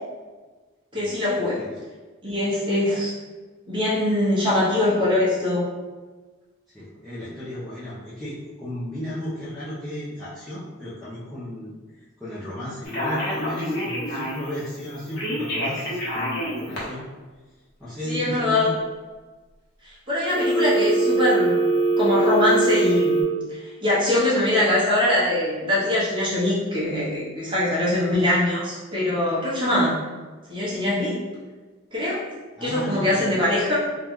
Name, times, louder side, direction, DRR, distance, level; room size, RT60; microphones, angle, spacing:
voice 1, 0.9-1.6 2.2-3.1 3.7-5.6 18.0-18.7 19.8-21.7 22.0-23.2 23.5-29.9 30.5-31.2 31.9-32.2 32.6-33.8, left 1 dB, 25° right, -8 dB, 1.1 m, -22 dB
voice 2, 6.7-17.0 17.8-18.7 32.6-33.3, left 1 dB, ahead, -13 dB, 0.7 m, -34 dB
Telephone, 12.8-14.5 15.2-16.8 20.3-23.2, right 2 dB, 50° left, 1.0 m, -23 dB
2.9 x 2.4 x 3.6 m, 1.3 s
head